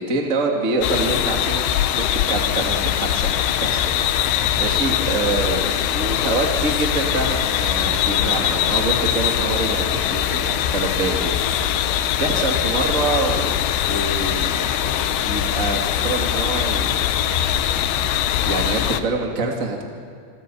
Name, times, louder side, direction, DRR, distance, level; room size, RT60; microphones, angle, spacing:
voice 1, 0.0-4.0 4.6-11.3 12.2-13.6 13.9-14.8 15.2-17.1 18.4-19.8, right 3 dB, 25° right, 1 dB, 2.0 m, -25 dB
sound 1, 0.8-19.0, left 10 dB, 80° left, 3.3 m, -22 dB
28.5 x 22.5 x 5.8 m, 2.2 s
omnidirectional pair, 5.5 m